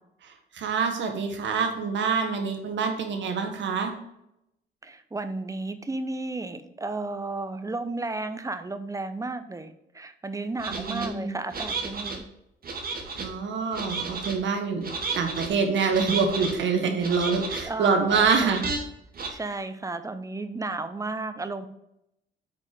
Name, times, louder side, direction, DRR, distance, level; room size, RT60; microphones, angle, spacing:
voice 1, 0.5-3.9 10.7-11.4 13.2-18.6 19.3-19.4, right 5 dB, 70° right, 5 dB, 1.7 m, -26 dB
voice 2, 4.8-12.2 17.6-18.7 19.3-21.7, right 2 dB, 15° right, 10 dB, 0.8 m, -33 dB
sound 1, 10.6-11.1 11.5-12.2 12.6-13.3 13.7-14.4 14.8-15.5 15.9-16.5 17.0-17.6 18.1-18.8 19.1-19.3, right 4 dB, 50° right, 1.7 m, -32 dB
8.0 x 4.9 x 5.0 m, 0.82 s
cardioid pair, 90°, 20 cm